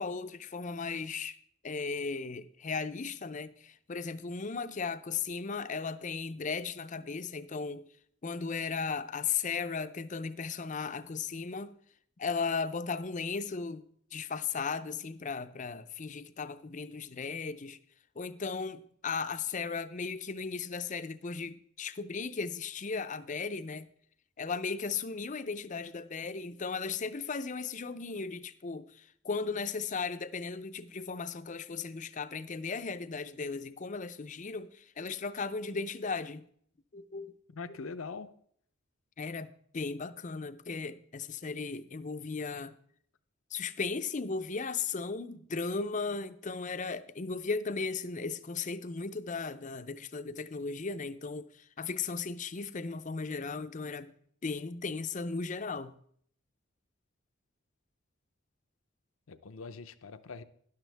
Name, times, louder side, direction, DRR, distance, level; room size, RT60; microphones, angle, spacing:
voice 1, 0.0-1.4 1.6-7.9 8.2-11.7 12.2-13.8 14.1-17.8 18.2-23.9 24.4-36.4 36.9-37.3 39.2-42.7 43.5-51.5 51.8-54.1 54.4-56.0, left 4 dB, 35° left, 0.5 m, -36 dB
voice 2, 37.5-38.3 59.3-60.4, left 4 dB, 75° left, 0.7 m, -42 dB
12.5 x 11.0 x 3.4 m
head